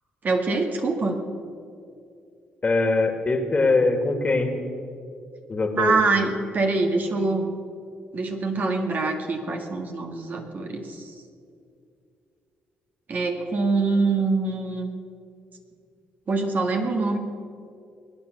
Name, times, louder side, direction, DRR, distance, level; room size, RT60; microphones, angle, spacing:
voice 1, 0.2-1.2 5.7-7.5 8.1-11.0 13.1-14.9 16.3-17.2, right 3 dB, 50° right, 4 dB, 2.0 m, -24 dB
voice 2, 2.6-4.5 5.5-6.0, left 3 dB, 35° left, 6 dB, 2.2 m, -22 dB
21.5 x 9.3 x 6.8 m, 2.4 s
hypercardioid pair, 55°, 4 cm